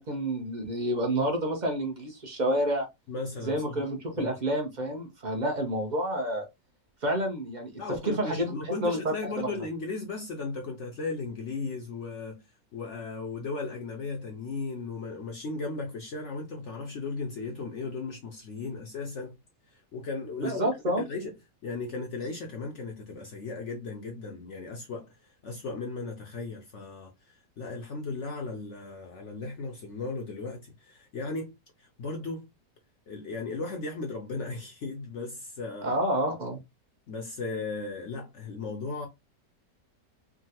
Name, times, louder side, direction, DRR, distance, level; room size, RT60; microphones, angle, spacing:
voice 1, 0.0-2.9 3.4-6.4 7.0-7.7 8.0-9.6 20.4-21.0 35.8-36.6, right 1 dB, 45° right, 0.5 m, -29 dB
voice 2, 3.1-3.8 4.2-4.3 7.8-12.4 12.7-19.4 19.7-20.7 21.0-21.3 21.6-32.5 33.1-36.0 37.1-39.1, left 3 dB, 60° left, 0.7 m, -36 dB
3.6 x 2.2 x 2.8 m
omnidirectional pair, 1.8 m